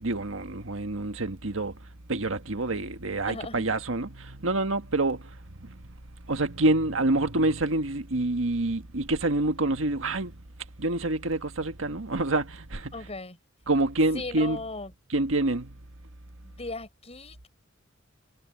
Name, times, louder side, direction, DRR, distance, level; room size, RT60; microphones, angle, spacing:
voice 1, 0.0-1.8 2.1-5.8 6.3-10.4 10.8-12.9 13.7-14.6 15.1-15.8, right 2 dB, 85° right, 1.6 m, -27 dB
voice 2, 3.3-3.7 12.9-13.4 14.1-14.9 16.4-17.5, left 3 dB, 30° left, 6.8 m, -37 dB
head